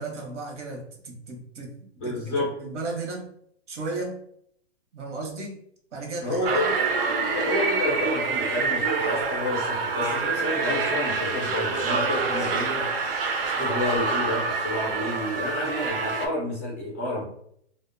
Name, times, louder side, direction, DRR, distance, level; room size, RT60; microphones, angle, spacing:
voice 1, 0.0-1.7 2.0-3.3 3.7-4.2 4.9-5.6 5.9-6.7, right 3 dB, 85° right, 3 dB, 0.9 m, -35 dB
voice 2, 2.0-2.5 6.2-6.7 7.3-12.9 13.6-17.2, left 1 dB, 15° left, -6 dB, 0.4 m, -29 dB
sound 1, 6.4-16.3, right 4 dB, 55° right, 0.5 m, -26 dB
2.4 x 2.1 x 2.4 m, 0.70 s
hypercardioid pair, 150°, 35 cm